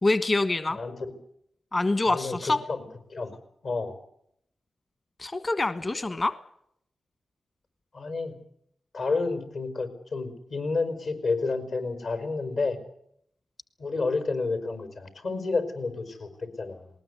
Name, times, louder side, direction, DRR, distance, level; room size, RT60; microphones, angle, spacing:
voice 1, 0.0-0.8 1.7-2.6 5.2-6.3, left 2 dB, 40° left, 12 dB, 1.4 m, -25 dB
voice 2, 2.1-2.8 3.1-3.3 3.6-3.9 7.9-8.3 8.9-12.8 13.8-16.3 16.6-16.9, left 3 dB, 75° left, 9 dB, 5.0 m, -30 dB
19.5 x 19.5 x 8.2 m, 0.71 s
cardioid pair, 55°, 0 cm